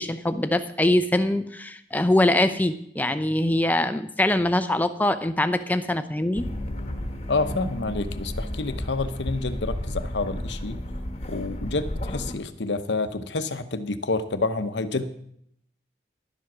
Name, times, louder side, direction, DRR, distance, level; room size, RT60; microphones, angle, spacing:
voice 1, 0.0-6.5, left 1 dB, 10° left, 10 dB, 0.6 m, -23 dB
sound 1, 6.3-12.3, left 1 dB, 35° left, 1.2 m, -32 dB
voice 2, 7.3-10.8 11.3-15.1, left 3 dB, 85° left, 11 dB, 0.9 m, -28 dB
11.5 x 7.6 x 6.1 m, 0.70 s
head